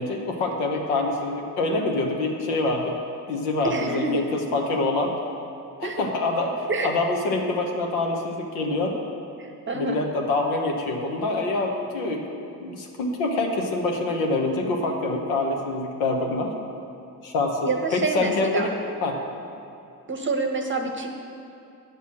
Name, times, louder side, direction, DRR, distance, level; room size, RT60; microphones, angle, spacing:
voice 1, 0.0-2.9 3.3-5.2 5.8-9.0 9.7-12.3 12.6-16.5 17.2-18.7 19.0-19.2, left 2 dB, 65° left, 1 dB, 1.2 m, -26 dB
voice 2, 3.7-4.2 5.8-6.0 6.7-6.9 9.4-10.0 17.6-18.7 20.1-21.1, right 3 dB, 25° right, 3 dB, 1.0 m, -27 dB
9.2 x 6.8 x 6.3 m, 2.6 s
figure-of-eight pair, 50°, 48 cm